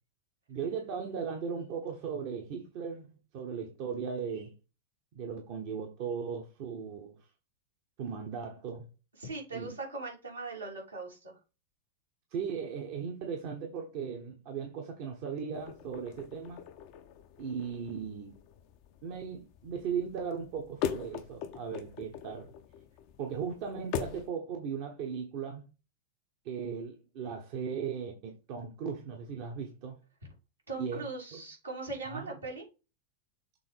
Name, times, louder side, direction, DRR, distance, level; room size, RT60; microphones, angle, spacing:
voice 1, 0.5-4.5 5.1-7.2 8.0-8.9 9.5-9.8 12.3-16.6 17.4-18.4 19.0-22.5 23.2-25.6 26.4-29.9 30.8-31.1 31.3-31.4 32.0-32.4, right 6 dB, 45° right, 1.3 m, -37 dB
voice 2, 9.2-11.3 30.7-32.6, right 3 dB, 80° right, 3.4 m, -40 dB
sound 1, 15.5-24.3, left 9 dB, 45° left, 0.8 m, -41 dB
6.8 x 3.7 x 5.1 m
figure-of-eight pair, 90°, 0 cm